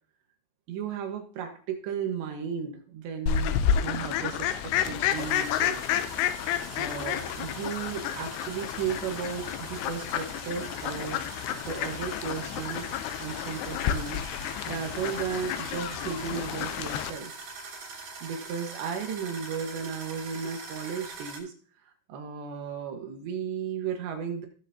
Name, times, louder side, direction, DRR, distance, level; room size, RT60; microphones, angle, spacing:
voice 1, 0.7-5.8 6.8-12.9 13.2-14.2 14.7-17.3 18.2-21.5 22.1-24.5, right 7 dB, 80° right, 4 dB, 3.7 m, -35 dB
Fowl, 3.3-17.1, left 9 dB, 80° left, 2.6 m, -30 dB
sound 1, 5.1-21.4, right 4 dB, 60° right, 4.5 m, -44 dB
18.0 x 6.7 x 2.8 m, 0.43 s
omnidirectional pair, 5.0 m